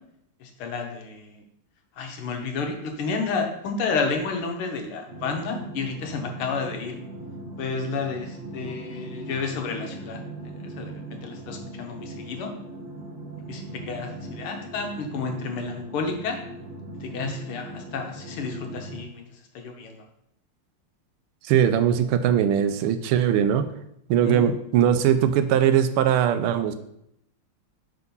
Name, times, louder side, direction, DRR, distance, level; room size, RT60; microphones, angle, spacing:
voice 1, 0.4-1.4 2.0-6.9 7.6-12.5 13.5-16.4 17.0-20.0 24.2-24.5, left 4 dB, 80° left, 3 dB, 2.0 m, -31 dB
sound 1, 5.1-19.0, right 2 dB, 40° right, 1.0 m, -39 dB
voice 2, 21.4-23.7 24.1-26.7, right 9 dB, 85° right, 10 dB, 1.5 m, -20 dB
6.0 x 4.7 x 5.4 m, 0.77 s
omnidirectional pair, 2.4 m